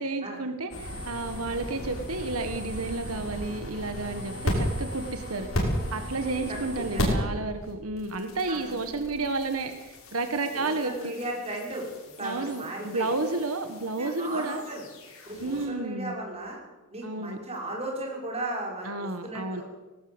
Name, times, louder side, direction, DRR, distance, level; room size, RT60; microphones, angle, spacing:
voice 1, 0.0-11.1 12.2-14.6 15.4-16.2 17.0-17.4 18.8-19.6, right 3 dB, 85° right, 7 dB, 1.6 m, -31 dB
sound 1, 0.7-7.3 7.6-15.7, equal, 65° left, 6.3 m, -35 dB
voice 2, 6.5-7.0 8.5-8.8 10.5-13.1 14.0-14.8 15.3-16.6 16.9-19.6, right 1 dB, 30° right, -1 dB, 5.8 m, -36 dB
18.5 x 18.5 x 8.1 m, 1.2 s
head